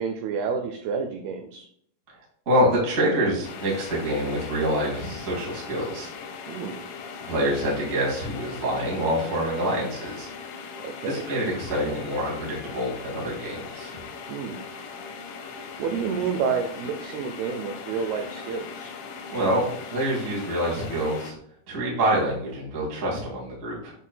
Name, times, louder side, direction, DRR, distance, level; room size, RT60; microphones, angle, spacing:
voice 1, 0.0-1.7 6.5-6.8 10.8-11.2 14.3-14.6 15.8-18.9, right 6 dB, 85° right, 5 dB, 2.2 m, -29 dB
voice 2, 2.4-6.1 7.2-10.3 11.0-14.0 19.3-21.3 21.7-23.9, right 1 dB, 35° right, -4 dB, 1.3 m, -26 dB
sound 1, 3.4-21.3, left 5 dB, 90° left, 3.2 m, -39 dB
8.1 x 5.5 x 2.2 m, 0.65 s
omnidirectional pair, 5.2 m